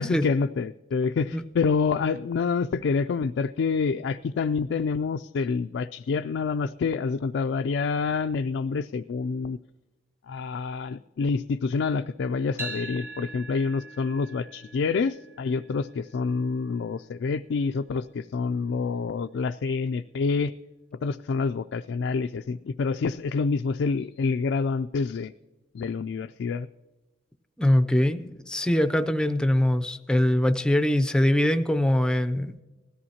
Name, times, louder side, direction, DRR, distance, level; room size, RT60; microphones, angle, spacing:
voice 1, 0.0-9.6 10.3-20.5 21.0-25.3 25.7-26.7, left 4 dB, 85° left, 8 dB, 0.3 m, -27 dB
sound 1, 12.6-20.8, right 3 dB, 15° right, 1.2 m, -45 dB
voice 2, 27.6-32.5, left 1 dB, 5° left, 9 dB, 0.5 m, -22 dB
19.5 x 14.0 x 2.8 m, 1.2 s
head